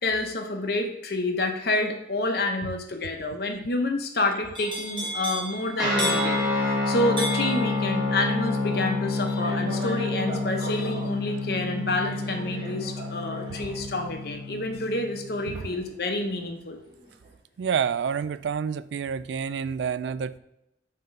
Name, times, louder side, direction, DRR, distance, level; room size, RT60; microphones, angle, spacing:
voice 1, 0.0-16.8, left 2 dB, 55° left, 4 dB, 0.8 m, -28 dB
sound 1, 4.5-16.5 16.8-17.3, right 1 dB, 25° right, 1.2 m, -37 dB
Guitar, 5.8-15.6, left 2 dB, 5° right, 1.2 m, -28 dB
voice 2, 17.6-20.4, right 7 dB, 70° right, 16 dB, 0.3 m, -28 dB
5.8 x 3.7 x 5.3 m, 0.86 s
head